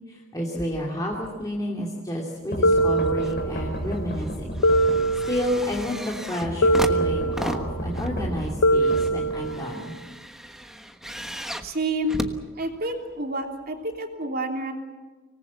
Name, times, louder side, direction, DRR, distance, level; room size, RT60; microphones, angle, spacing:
voice 1, 0.1-4.5 5.3-9.9, equal, 15° left, -2 dB, 2.8 m, -30 dB
sound 1, 2.5-5.5 6.4-9.7, equal, 45° left, 5.2 m, -32 dB
sound 2, 2.6-3.8 4.6-5.8 6.6-7.8 8.6-9.8, right 1 dB, 85° left, 0.6 m, -22 dB
sound 3, 2.7-3.4 3.8-13.1 13.9-14.0, equal, ahead, 1.2 m, -36 dB
voice 2, 11.6-12.2 12.6-14.7, right 1 dB, 45° right, 3 dB, 3.2 m, -29 dB
25.5 x 19.5 x 7.3 m, 1.3 s
head